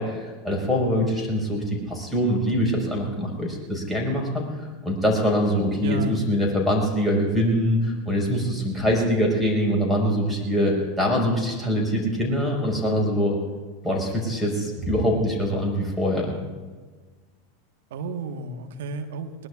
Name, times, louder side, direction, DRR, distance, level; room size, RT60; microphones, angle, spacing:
voice 1, 0.0-13.4 13.8-16.3, equal, ahead, -1 dB, 5.3 m, -24 dB
voice 2, 5.8-6.2 17.9-19.5, right 1 dB, 70° right, 5 dB, 1.4 m, -32 dB
22.0 x 20.0 x 2.5 m, 1.4 s
hypercardioid pair, 90°, 0 cm